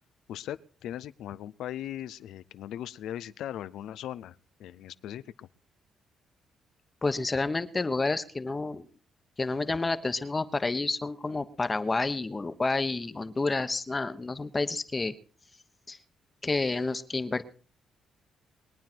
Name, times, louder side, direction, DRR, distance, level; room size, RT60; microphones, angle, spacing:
voice 1, 0.3-5.5, left 11 dB, 80° left, 16 dB, 0.6 m, -39 dB
voice 2, 7.0-8.9 9.4-15.1 15.9-16.0 16.4-17.5, left 3 dB, 25° left, 11 dB, 1.1 m, -29 dB
22.0 x 9.4 x 4.5 m, 0.42 s
cardioid pair, 90°, 0 cm